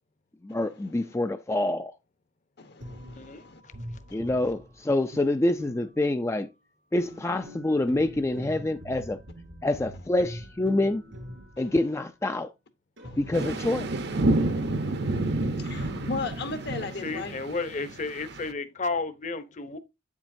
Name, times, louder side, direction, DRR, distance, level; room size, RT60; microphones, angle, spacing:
voice 1, 0.4-1.9 4.1-6.5 6.9-9.2 9.6-11.0 11.6-12.5 13.2-13.9, left 1 dB, 15° left, 0.4 m, -26 dB
voice 2, 2.6-3.6 7.0-7.1 11.6-11.7 13.0-13.3 14.5-17.4, left 4 dB, 60° left, 1.1 m, -38 dB
sound 1, 2.8-6.3 7.0-12.1 13.0-15.4 15.7-16.8, equal, 85° right, 3.2 m, -44 dB
voice 3, 3.2-3.7 17.0-19.8, left 3 dB, 40° left, 0.9 m, -33 dB
sound 2, 13.3-18.5, right 2 dB, 60° right, 0.9 m, -29 dB
8.7 x 7.3 x 2.6 m
head